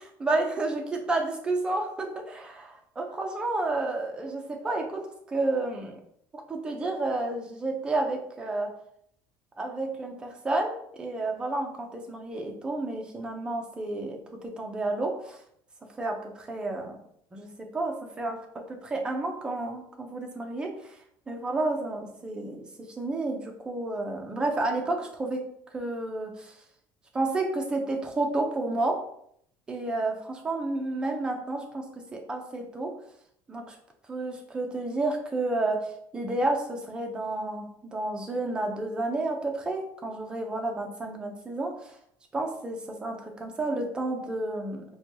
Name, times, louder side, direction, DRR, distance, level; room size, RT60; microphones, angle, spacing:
voice 1, 0.2-6.0 6.3-8.7 9.6-15.4 16.0-17.0 17.3-18.4 18.7-21.0 21.3-22.7 23.0-25.4 25.7-26.5 27.1-29.0 29.7-31.9 32.1-32.9 33.5-33.8 34.1-42.0 42.3-44.8, right 2 dB, 15° right, 2 dB, 0.6 m, -31 dB
4.2 x 2.3 x 2.9 m, 0.69 s
cardioid pair, 145°, 6 cm